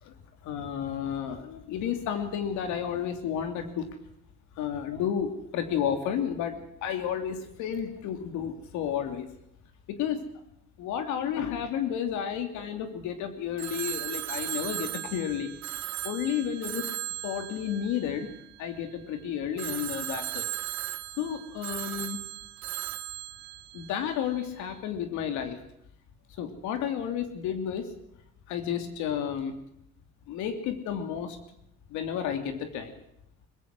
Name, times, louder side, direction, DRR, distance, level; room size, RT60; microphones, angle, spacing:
voice 1, 0.4-3.9 4.6-9.3 9.9-10.2 10.8-15.8 16.0-16.9 17.2-18.3 18.6-20.5 21.2-22.2 23.7-25.6 26.3-27.9 28.5-29.5 30.3-31.4 31.9-33.0, left 8 dB, 75° left, 7 dB, 3.0 m, -32 dB
Telephone, 13.6-18.8 19.6-24.5, right 15 dB, 65° right, 1.2 m, -37 dB
23.0 x 21.0 x 6.3 m, 0.76 s
cardioid pair, 160°, 29 cm